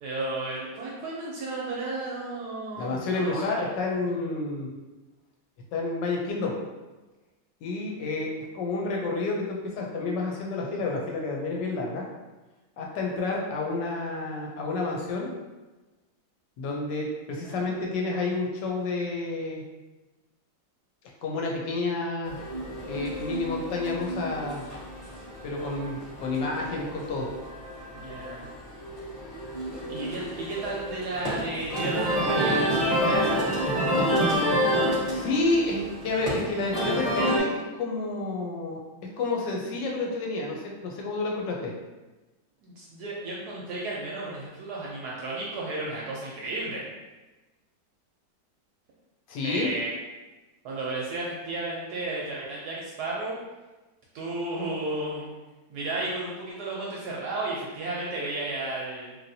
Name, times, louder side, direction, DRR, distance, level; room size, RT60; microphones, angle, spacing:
voice 1, 0.0-3.7 17.4-17.7 27.9-28.5 29.9-33.4 42.6-46.9 49.4-49.9 50.6-53.4 54.1-55.4 55.7-59.2, right 2 dB, 70° right, -4 dB, 0.9 m, -33 dB
voice 2, 2.8-4.7 5.7-6.5 7.6-12.0 12.8-15.3 16.6-19.6 21.2-22.4 22.9-24.6 25.4-27.3 35.1-38.8 39.2-41.7 49.3-49.7, left 3 dB, 75° left, -1 dB, 1.1 m, -30 dB
sound 1, 22.2-37.4, equal, 35° left, 0.7 m, -29 dB
3.2 x 2.7 x 2.6 m, 1.2 s
omnidirectional pair, 2.1 m